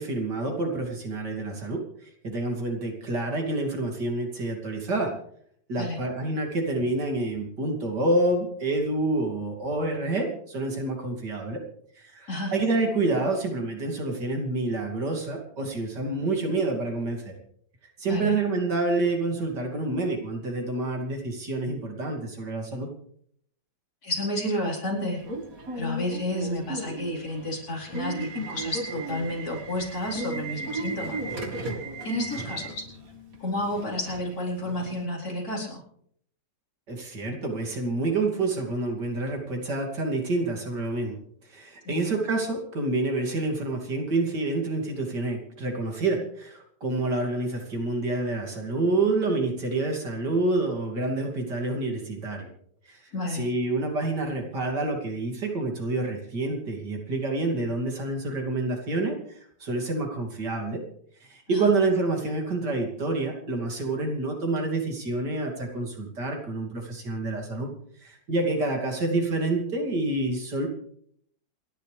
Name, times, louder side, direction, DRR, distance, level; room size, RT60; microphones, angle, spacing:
voice 1, 0.0-5.1 5.7-11.6 12.0-17.3 18.0-22.9 36.9-41.2 41.5-52.5 52.8-53.0 53.3-60.8 61.2-67.7 68.0-70.7, right 2 dB, 65° right, 2 dB, 3.3 m, -28 dB
voice 2, 24.0-25.2 25.7-31.2 32.0-32.8 33.4-35.8 41.8-42.0 53.1-53.5 61.5-61.7, left 1 dB, 55° left, -3 dB, 5.0 m, -31 dB
Subway metro underground / Alarm, 25.2-35.0, right 2 dB, 50° right, 2.2 m, -35 dB
28.0 x 11.5 x 3.4 m, 0.65 s
omnidirectional pair, 2.0 m